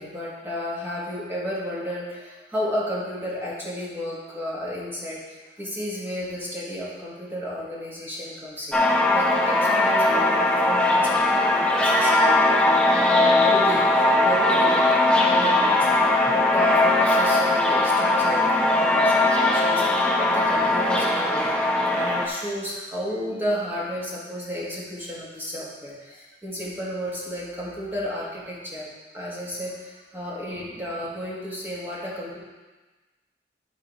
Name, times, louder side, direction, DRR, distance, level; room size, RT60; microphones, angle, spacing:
voice 1, 0.0-8.8 9.1-28.9 29.1-32.4, equal, 10° right, -6 dB, 1.7 m, -33 dB
sound 1, 8.7-22.3, left 2 dB, 5° left, 0.6 m, -20 dB
12.0 x 4.1 x 4.2 m, 1.2 s
head